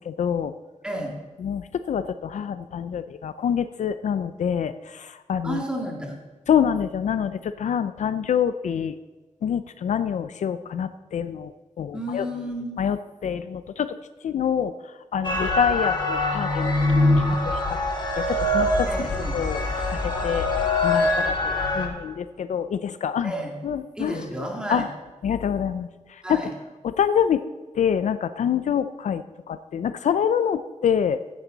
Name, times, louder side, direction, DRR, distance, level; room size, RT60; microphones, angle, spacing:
voice 1, 0.1-0.5 1.4-4.7 5.3-5.6 6.5-8.9 9.4-11.5 11.8-12.2 12.8-13.0 13.2-13.9 14.2-14.7 15.1-17.0 18.2-18.9 19.3-19.6 19.9-20.0 20.2-20.5 20.8-23.3 23.6-24.1 24.7-24.8 25.2-25.9 26.3-26.4 27.0-27.4 27.8-29.2 29.5-31.2, left 8 dB, 70° left, 12 dB, 0.5 m, -25 dB
voice 2, 0.8-1.2 5.4-6.2 11.9-12.8 18.9-19.4 23.2-23.6 23.9-24.9 26.2-26.5, equal, 5° right, 0 dB, 2.4 m, -31 dB
sound 1, 15.2-21.9, left 2 dB, 35° left, 2.3 m, -23 dB
15.5 x 10.5 x 4.0 m, 1.3 s
wide cardioid pair, 155°, 13 cm